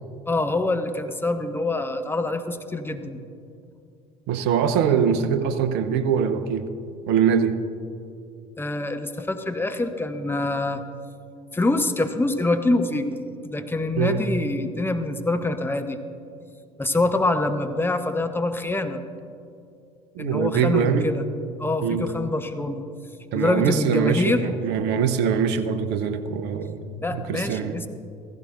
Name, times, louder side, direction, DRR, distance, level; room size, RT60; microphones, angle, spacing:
voice 1, 0.3-3.2 8.6-10.8 11.5-13.2 13.4-16.0 16.8-19.0 20.2-21.2 21.6-22.8 23.3-24.5 27.0-27.9, left 2 dB, 10° left, 7 dB, 0.9 m, -25 dB
voice 2, 4.3-6.7 7.1-7.6 14.0-14.2 20.1-21.1 21.8-22.1 23.3-27.7, right 7 dB, 60° right, 11 dB, 0.8 m, -23 dB
15.5 x 15.0 x 2.6 m, 2.5 s
hypercardioid pair, 60°, 20 cm